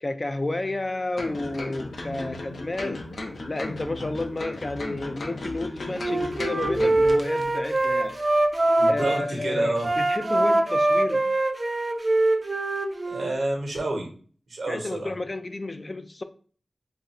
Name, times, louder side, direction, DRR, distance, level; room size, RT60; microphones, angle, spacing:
voice 1, 0.0-3.0 3.5-8.2 8.9-11.3 14.7-16.2, left 2 dB, 35° left, 9 dB, 0.3 m, -31 dB
sound 1, 1.2-7.4 7.8-7.9, left 2 dB, 80° left, 0.6 m, -35 dB
Wind instrument woodwind instrument, 5.9-9.2 9.8-13.3, right 2 dB, 35° right, 0.4 m, -23 dB
voice 2, 8.8-9.9 13.1-14.1 14.5-15.1, right 2 dB, 90° right, 1 dB, 0.9 m, -29 dB
2.5 x 2.3 x 4.1 m, 0.43 s
wide cardioid pair, 85°, 0 cm